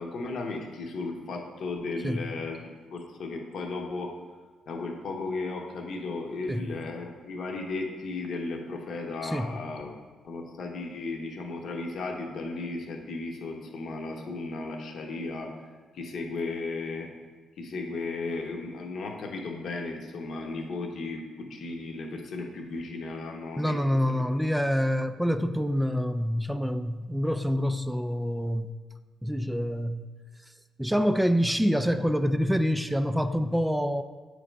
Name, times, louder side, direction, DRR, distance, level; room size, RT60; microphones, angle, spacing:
voice 1, 0.0-4.1 4.7-10.0 10.2-15.5 15.9-17.1 17.6-23.8 24.1-24.2, left 3 dB, 65° left, 1 dB, 0.9 m, -35 dB
voice 2, 9.2-9.5 23.6-28.7 29.2-30.0 30.8-34.0, equal, 5° right, 10 dB, 0.4 m, -26 dB
8.3 x 3.3 x 5.1 m, 1.4 s
cardioid pair, 90°, 0 cm